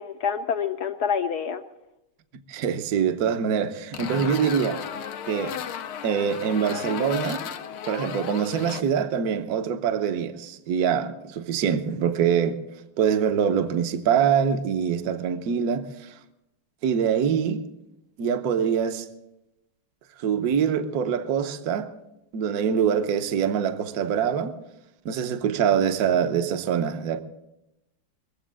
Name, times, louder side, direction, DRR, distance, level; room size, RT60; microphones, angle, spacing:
voice 1, 0.0-1.6, left 7 dB, 65° left, 1.0 m, -27 dB
voice 2, 2.5-4.8 5.3-5.5 6.0-7.4 7.9-12.6 13.0-16.1 16.8-17.6 18.2-19.1 20.2-21.9 22.3-24.5 25.0-27.2, right 7 dB, 55° right, 1.2 m, -24 dB
sound 1, 3.9-8.8, left 9 dB, 90° left, 1.7 m, -34 dB
22.5 x 7.7 x 7.5 m
omnidirectional pair, 2.3 m